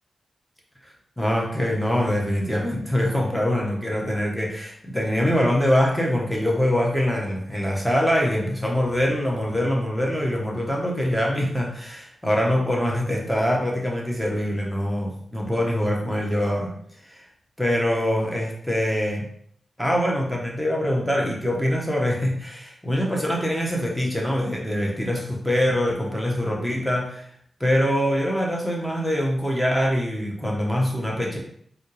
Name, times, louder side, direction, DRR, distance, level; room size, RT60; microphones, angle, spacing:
voice 1, 1.2-16.7 17.1-17.2 17.6-19.2 19.8-27.3 27.6-31.4, equal, 5° left, -2 dB, 1.3 m, -24 dB
4.1 x 2.5 x 3.3 m, 0.64 s
cardioid pair, 45°, 0 cm